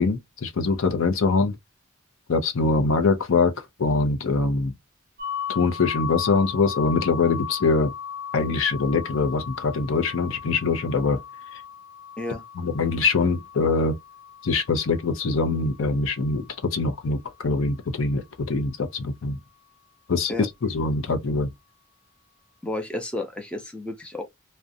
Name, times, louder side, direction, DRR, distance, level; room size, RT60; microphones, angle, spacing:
voice 1, 0.0-1.6 2.3-3.5 3.8-4.7 5.5-7.9 8.3-11.2 12.6-14.0 14.4-19.4 20.1-21.5, left 4 dB, 65° left, 0.5 m, -23 dB
sound 1, 5.2-16.9, left 8 dB, 50° right, 0.6 m, -37 dB
voice 2, 22.6-24.2, left 2 dB, 5° left, 0.5 m, -31 dB
2.4 x 2.1 x 2.5 m
head